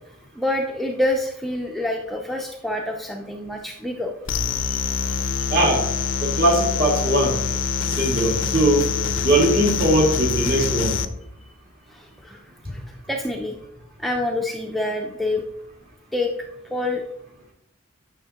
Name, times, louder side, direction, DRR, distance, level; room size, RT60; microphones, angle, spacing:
voice 1, 0.4-4.1 11.9-12.4 12.7-13.6 14.0-15.4 16.1-16.3 16.7-17.0, left 1 dB, ahead, 0 dB, 0.5 m, -26 dB
sound 1, 4.3-11.1, left 6 dB, 65° left, 0.5 m, -25 dB
voice 2, 5.5-5.9 6.2-7.4 7.9-9.0 9.2-11.0, right 1 dB, 45° right, -2 dB, 2.2 m, -20 dB
9.9 x 6.3 x 2.9 m, 0.79 s
head